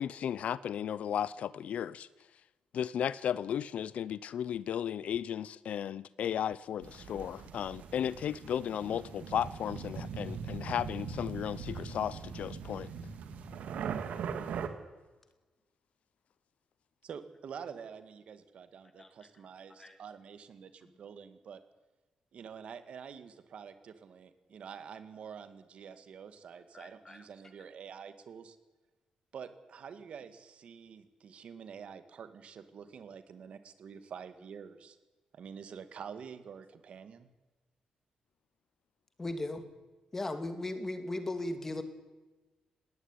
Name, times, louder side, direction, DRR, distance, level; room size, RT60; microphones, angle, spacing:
voice 1, 0.0-2.1 2.7-12.9, left 9 dB, 65° left, 0.7 m, -35 dB
sound 1, 6.8-14.7, right 6 dB, 80° right, 2.4 m, -40 dB
voice 2, 17.0-21.6 22.3-28.6 29.3-35.0 35.3-37.3, right 7 dB, 55° right, 2.1 m, -47 dB
voice 3, 26.7-27.2 39.2-39.7 40.1-41.8, left 2 dB, 15° left, 2.4 m, -37 dB
19.0 x 19.0 x 9.8 m
wide cardioid pair, 170°, 2 cm